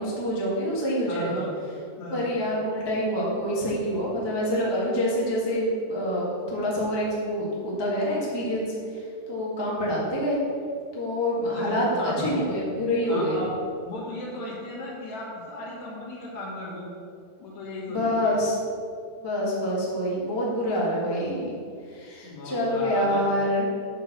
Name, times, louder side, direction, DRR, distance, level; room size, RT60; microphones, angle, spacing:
voice 1, 0.0-1.4 2.1-8.7 9.3-10.4 10.9-13.4 17.9-18.6 19.2-21.6 21.9-23.7, equal, 15° left, -6 dB, 1.0 m, -26 dB
voice 2, 1.1-1.5 2.0-2.2 11.5-12.3 12.8-13.5 13.8-16.9 17.4-18.3 22.2-23.2, left 1 dB, 60° left, -5 dB, 3.2 m, -36 dB
8.8 x 4.8 x 6.8 m, 2.3 s
omnidirectional pair, 3.8 m